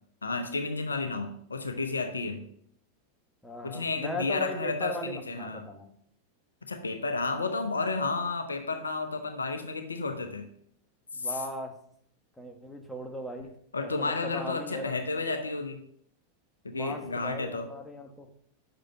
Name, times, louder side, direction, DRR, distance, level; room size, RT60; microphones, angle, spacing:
voice 1, 0.2-2.4 3.6-5.7 6.7-10.5 11.1-11.4 13.7-15.8 16.6-17.7, left 3 dB, 75° left, 7 dB, 0.8 m, -32 dB
voice 2, 3.4-5.9 11.1-11.8 12.4-13.5 13.8-15.0 16.7-18.3, left 1 dB, 5° left, 3 dB, 1.2 m, -38 dB
6.3 x 5.1 x 5.7 m, 0.66 s
figure-of-eight pair, 90°, 0 cm